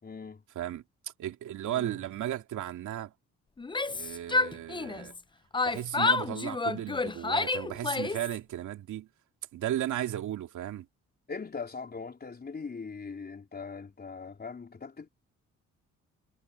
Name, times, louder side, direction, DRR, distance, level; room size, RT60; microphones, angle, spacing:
voice 1, 0.0-0.4 1.7-1.9 11.3-15.1, left 5 dB, 30° left, 4.1 m, -40 dB
voice 2, 1.2-3.1 3.9-5.1 5.6-9.1 9.5-10.9, right 12 dB, 75° right, 2.6 m, -35 dB
Yell, 3.6-5.2 5.5-8.4, left 3 dB, 15° left, 0.6 m, -29 dB
cardioid pair, 90°, 30 cm